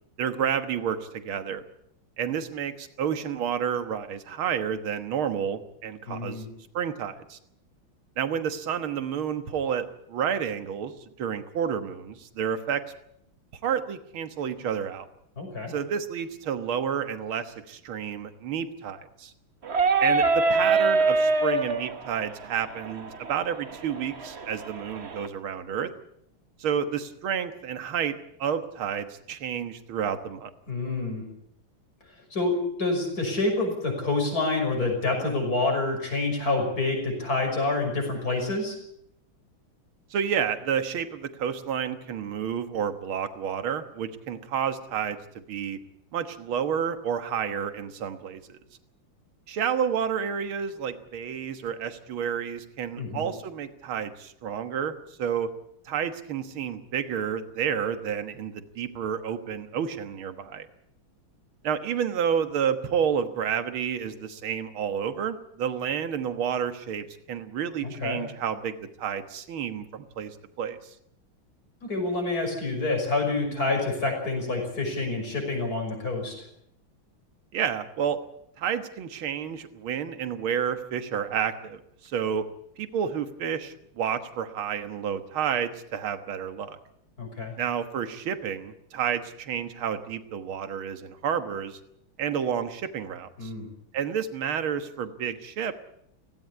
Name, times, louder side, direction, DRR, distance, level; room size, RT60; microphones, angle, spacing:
voice 1, 0.2-1.6 2.2-6.5 6.7-7.4 8.2-10.9 11.2-12.8 13.6-15.1 15.7-19.3 20.0-25.9 26.6-28.1 28.4-30.5 40.1-45.8 46.1-48.6 49.5-55.5 55.9-60.7 61.6-70.9 77.5-78.2 78.6-82.5 82.8-86.8 87.6-91.8 92.2-93.5 93.9-95.7, right 8 dB, 75° right, 10 dB, 2.2 m, -30 dB
voice 2, 6.1-6.5 15.4-15.7 30.7-31.2 32.3-38.7 53.0-53.3 67.8-68.2 71.8-76.3 87.2-87.5 93.4-93.7, left 2 dB, 45° left, 3 dB, 6.5 m, -27 dB
sound 1, 19.6-25.3, right 3 dB, 35° right, 1.4 m, -25 dB
17.0 x 17.0 x 9.7 m, 0.73 s
omnidirectional pair, 2.3 m